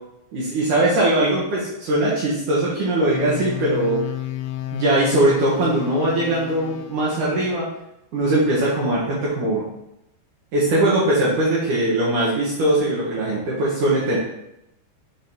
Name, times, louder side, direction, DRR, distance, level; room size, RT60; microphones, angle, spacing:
voice 1, 0.3-4.0 4.7-7.7 8.1-9.7 10.5-14.2, right 1 dB, 65° right, -6 dB, 2.1 m, -20 dB
sound 1, 3.1-7.5, left 14 dB, 80° left, 2.4 m, -32 dB
7.4 x 4.0 x 4.2 m, 0.85 s
omnidirectional pair, 5.1 m